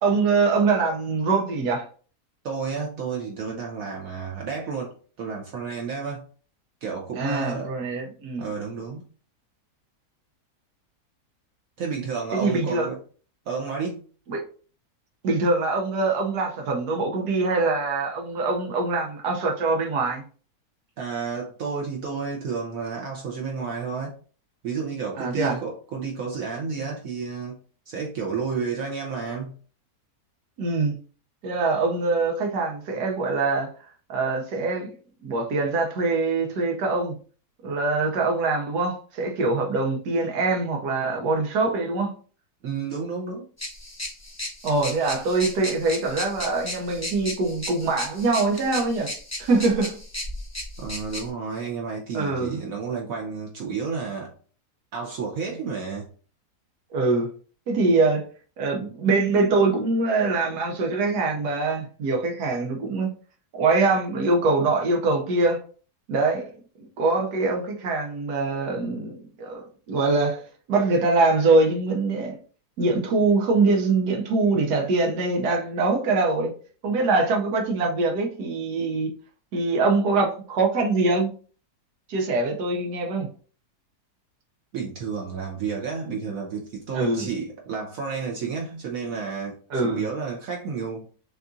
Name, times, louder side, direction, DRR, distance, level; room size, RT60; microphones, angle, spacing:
voice 1, 0.0-1.8 7.2-8.5 12.3-12.9 14.3-14.4 15.2-20.2 25.2-25.6 30.6-30.9 31.4-33.7 34.1-34.9 35.2-37.2 37.6-42.1 44.6-49.1 49.4-50.0 52.1-52.7 56.9-57.3 57.7-58.2 58.6-63.1 63.5-65.6 66.1-66.5 66.8-70.4 70.7-72.4 72.8-76.5 76.8-79.1 79.5-81.3 82.1-83.3 86.9-87.3 89.7-90.0, right 3 dB, 85° right, 1.4 m, -23 dB
voice 2, 2.4-6.3 6.8-7.7 8.4-9.0 11.8-13.0 13.5-14.0 21.0-24.2 24.6-27.6 27.9-29.5 42.6-43.4 50.8-54.3 54.9-56.1 84.7-91.1, right 5 dB, 65° right, 1.1 m, -31 dB
sound 1, 43.6-51.3, left 1 dB, 15° left, 0.7 m, -35 dB
6.5 x 2.4 x 2.6 m
omnidirectional pair, 1.7 m